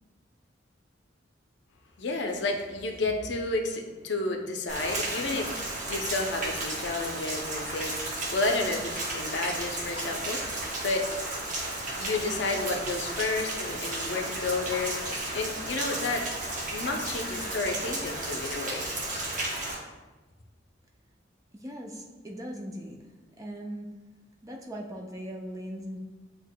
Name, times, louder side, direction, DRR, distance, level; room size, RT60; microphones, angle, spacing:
voice 1, 2.0-8.0 8.3-11.1 11.9-15.0 15.3-16.3 16.7-18.9, left 3 dB, 65° left, 3 dB, 0.5 m, -31 dB
Rain, 4.7-19.7, right 2 dB, 45° right, 0.9 m, -34 dB
voice 2, 21.5-23.0 23.4-23.9 24.4-26.0, equal, 20° right, 1 dB, 0.4 m, -39 dB
8.0 x 2.8 x 2.2 m, 1.2 s
head